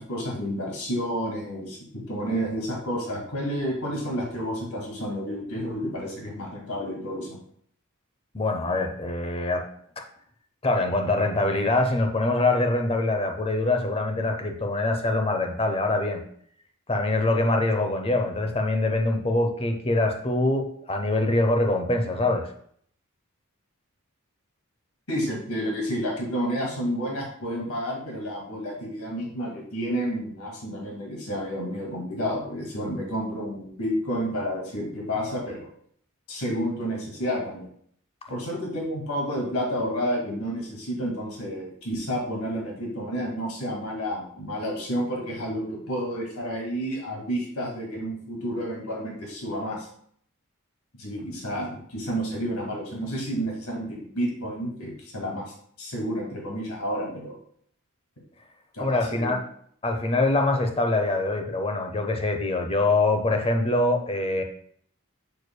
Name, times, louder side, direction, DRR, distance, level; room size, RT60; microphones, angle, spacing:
voice 1, 0.0-7.4 25.1-35.7 36.3-37.7 38.3-49.9 51.0-55.4 55.8-57.4 58.7-59.4, equal, 85° left, -1 dB, 2.0 m, -30 dB
voice 2, 8.3-9.6 10.0-10.1 10.6-16.2 16.9-22.5 58.8-59.4 59.8-64.4, left 2 dB, 25° left, 4 dB, 0.8 m, -24 dB
6.6 x 6.5 x 2.2 m, 0.62 s
head